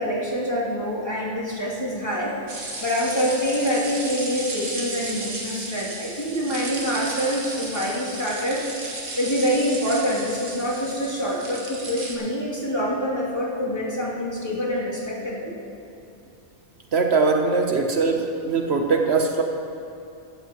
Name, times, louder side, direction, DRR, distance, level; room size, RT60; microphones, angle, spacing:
voice 1, 0.0-2.4 2.8-8.6 9.2-15.5, equal, 20° left, -7 dB, 2.7 m, -26 dB
sound 1, 2.5-12.1, right 2 dB, 75° right, 2.0 m, -34 dB
voice 2, 16.9-19.4, right 4 dB, 55° right, 3 dB, 1.1 m, -21 dB
16.0 x 14.0 x 3.0 m, 2.7 s
omnidirectional pair, 1.4 m